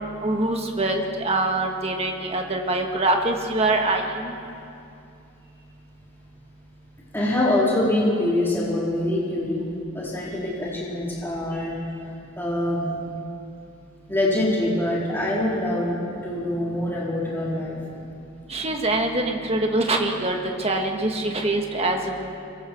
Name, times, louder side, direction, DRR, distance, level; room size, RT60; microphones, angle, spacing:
voice 1, 0.2-4.3 18.5-22.4, right 2 dB, 30° right, 2 dB, 1.9 m, -24 dB
voice 2, 7.1-9.6 9.9-11.8 12.4-12.9 14.1-17.8, left 1 dB, 10° left, -7 dB, 4.2 m, -24 dB
24.5 x 23.0 x 4.7 m, 2.6 s
head